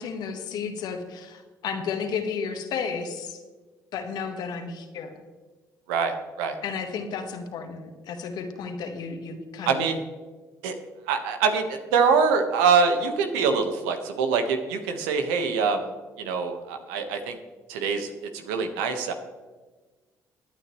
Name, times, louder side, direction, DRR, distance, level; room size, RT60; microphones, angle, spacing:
voice 1, 0.0-3.4 3.9-5.1 6.6-9.8, left 6 dB, 70° left, 6 dB, 1.6 m, -33 dB
voice 2, 5.9-6.6 9.6-10.0 10.6-10.7 11.1-15.9 16.2-17.4 17.7-19.1, right 5 dB, 85° right, 6 dB, 1.4 m, -24 dB
22.5 x 9.0 x 3.2 m, 1.3 s
hypercardioid pair, 60°, 7 cm